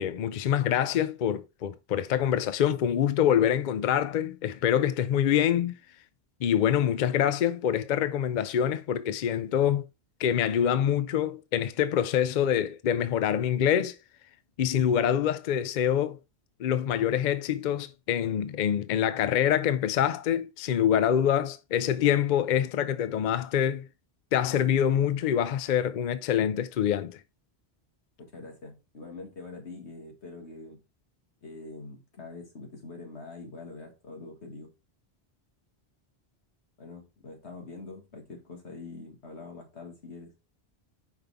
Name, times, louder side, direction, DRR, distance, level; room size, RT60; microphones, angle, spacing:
voice 1, 0.0-5.8 6.4-9.9 10.2-14.0 14.6-16.2 16.6-23.9 24.3-27.2, left 9 dB, 55° left, 0.5 m, -25 dB
voice 2, 28.2-30.8 31.4-34.7 36.8-40.3, left 3 dB, 90° left, 2.2 m, -44 dB
5.3 x 5.3 x 3.4 m
omnidirectional pair, 1.1 m